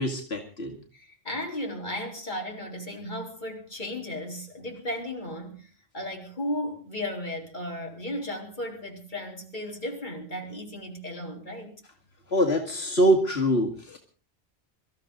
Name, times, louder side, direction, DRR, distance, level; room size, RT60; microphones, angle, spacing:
voice 1, 0.0-0.8 12.3-14.0, right 1 dB, 85° left, 2 dB, 2.5 m, -24 dB
voice 2, 0.9-11.7, left 1 dB, 50° left, 1 dB, 4.2 m, -35 dB
25.0 x 14.0 x 3.9 m, 0.36 s
omnidirectional pair, 1.0 m